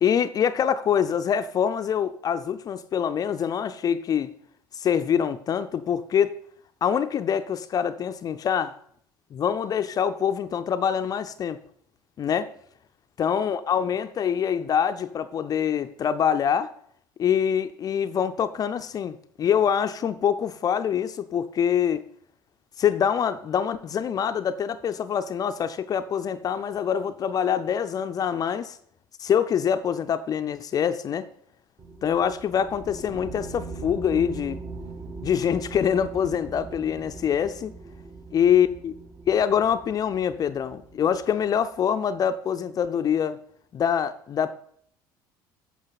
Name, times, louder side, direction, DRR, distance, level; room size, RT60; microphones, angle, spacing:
voice 1, 0.0-4.3 4.7-6.3 6.8-8.7 9.3-11.6 12.2-12.5 13.2-16.7 17.2-22.0 22.8-28.8 29.2-31.3 32.0-34.6 35.2-37.7 38.3-38.9 39.3-43.4 43.7-44.5, left 8 dB, 40° left, 0.4 m, -25 dB
sound 1, 31.8-41.8, right 3 dB, 35° right, 1.0 m, -40 dB
8.9 x 6.2 x 4.1 m
hypercardioid pair, 70°, 10 cm